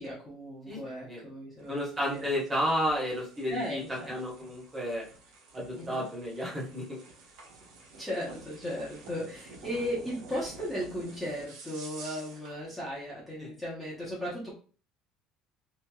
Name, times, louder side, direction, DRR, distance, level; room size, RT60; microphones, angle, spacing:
voice 1, 0.0-2.3 3.5-4.2 5.8-6.0 8.0-14.5, equal, 5° left, -8 dB, 0.7 m, -36 dB
sound 1, 1.6-12.6, right 3 dB, 80° right, 0.9 m, -50 dB
voice 2, 1.7-3.8 4.1-5.0 5.5-7.0 13.4-13.5, equal, 15° right, -4 dB, 1.0 m, -32 dB
2.9 x 2.8 x 2.2 m, 0.39 s
cardioid pair, 175°, 0 cm